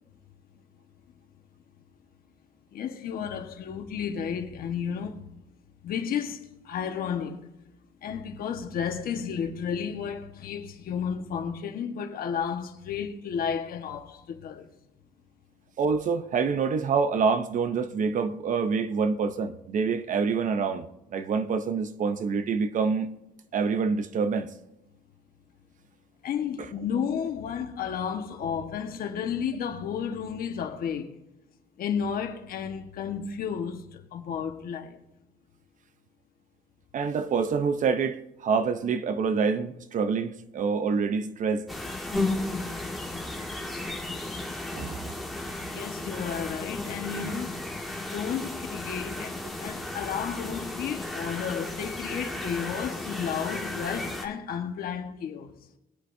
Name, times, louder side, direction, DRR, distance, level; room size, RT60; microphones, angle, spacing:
voice 1, 2.7-5.3 5.8-7.5 8.0-14.7 26.2-31.1 31.8-35.0 45.7-47.6 48.1-55.5, left 7 dB, 60° left, 1.4 m, -32 dB
voice 2, 15.8-23.1 23.5-24.5 26.6-26.7 36.9-41.7 44.7-45.1, right 5 dB, 50° right, 0.8 m, -26 dB
sound 1, 41.7-54.3, left 2 dB, ahead, 1.6 m, -34 dB
21.0 x 8.1 x 2.7 m
cardioid pair, 110°, 17 cm